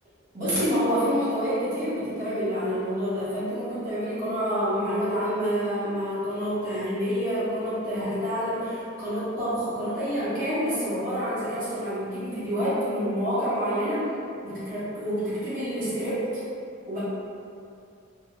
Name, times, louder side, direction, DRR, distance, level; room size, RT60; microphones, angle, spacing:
voice 1, 0.3-14.1 14.4-16.4 16.9-17.0, equal, 45° right, -13 dB, 0.8 m, -28 dB
3.1 x 2.0 x 2.2 m, 2.4 s
head